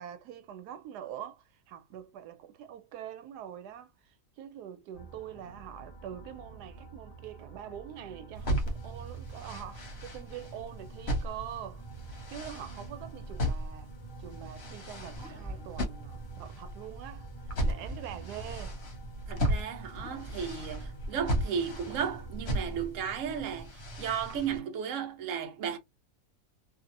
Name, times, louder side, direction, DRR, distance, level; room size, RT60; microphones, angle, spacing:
voice 1, 0.0-11.8 12.3-13.9 14.2-17.3 17.6-18.8, right 10 dB, 90° right, 1.1 m, -44 dB
sound 1, 4.9-22.9, right 5 dB, 25° left, 0.6 m, -49 dB
sound 2, 8.3-24.6, equal, 50° left, 1.0 m, -36 dB
sound 3, 15.2-17.0 17.6-19.4 19.9-21.7, left 1 dB, 10° left, 1.3 m, -49 dB
voice 2, 19.3-23.7 24.0-25.8, right 7 dB, 60° right, 1.0 m, -34 dB
2.7 x 2.7 x 2.5 m
omnidirectional pair, 1.7 m